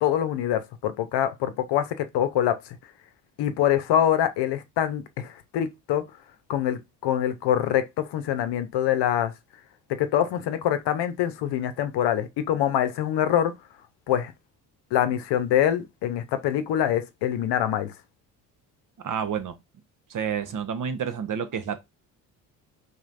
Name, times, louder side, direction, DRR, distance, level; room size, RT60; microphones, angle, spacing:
voice 1, 0.0-2.6 3.4-6.0 6.5-9.3 10.0-13.5 14.1-14.3 14.9-17.9, left 10 dB, 60° left, 0.8 m, -25 dB
voice 2, 19.0-19.6 20.1-21.8, right 7 dB, 45° right, 0.8 m, -29 dB
4.2 x 3.1 x 2.5 m
hypercardioid pair, 50°, 46 cm